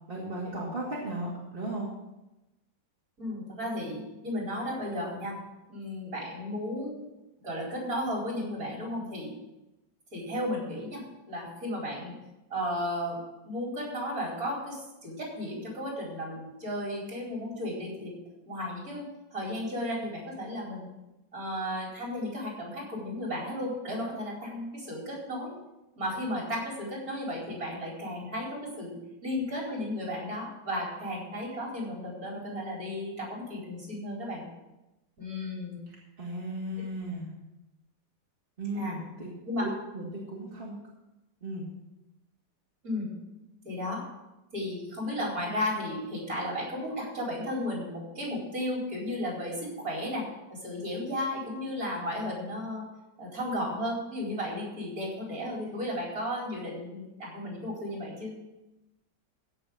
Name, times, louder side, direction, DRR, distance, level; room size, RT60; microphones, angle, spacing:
voice 1, 0.1-1.9 35.9-37.3 38.6-39.3 39.6-40.8 41.4-41.6, right 1 dB, 30° right, -5 dB, 2.5 m, -36 dB
voice 2, 3.2-5.4 5.7-7.1 7.4-9.3 10.1-12.1 12.5-18.2 18.5-19.0 19.3-20.9 21.3-25.5 26.0-34.4 35.2-35.8 38.7-39.0 39.4-39.6 42.8-43.2 43.6-44.0 44.5-50.2 50.5-52.9 53.2-58.3, left 1 dB, 50° right, -3 dB, 5.0 m, -34 dB
15.5 x 6.0 x 7.1 m, 0.99 s
omnidirectional pair, 2.0 m